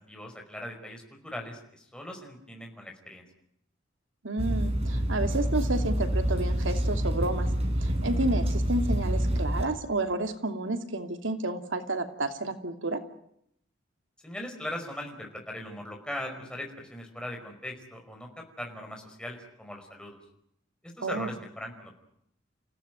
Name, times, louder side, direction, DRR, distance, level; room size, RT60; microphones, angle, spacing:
voice 1, 0.0-3.2 14.2-20.2 20.8-21.9, left 1 dB, 5° left, 2 dB, 5.1 m, -40 dB
voice 2, 4.2-7.5 7.8-13.0 21.0-21.3, right 2 dB, 85° right, 6 dB, 2.8 m, -31 dB
sound 1, 4.4-9.6, equal, 30° right, 4.7 m, -27 dB
29.0 x 16.5 x 9.3 m, 0.75 s
head